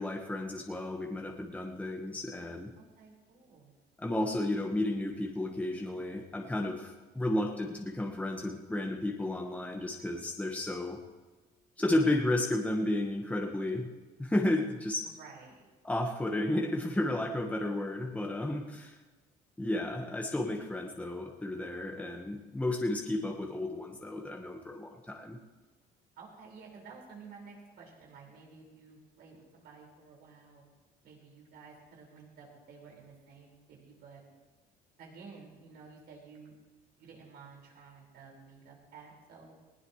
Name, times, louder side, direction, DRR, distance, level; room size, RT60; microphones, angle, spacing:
voice 1, 0.0-2.7 4.0-11.0 11.8-13.9 14.2-15.0 15.8-19.0 19.6-25.4, left 1 dB, 10° left, 1 dB, 1.5 m, -32 dB
voice 2, 2.8-3.7 15.0-15.7 26.2-30.6 31.0-34.2 35.0-36.5 37.0-39.5, right 5 dB, 70° right, -2 dB, 5.5 m, -52 dB
19.5 x 17.5 x 3.3 m, 1.3 s
cardioid pair, 110°, 17 cm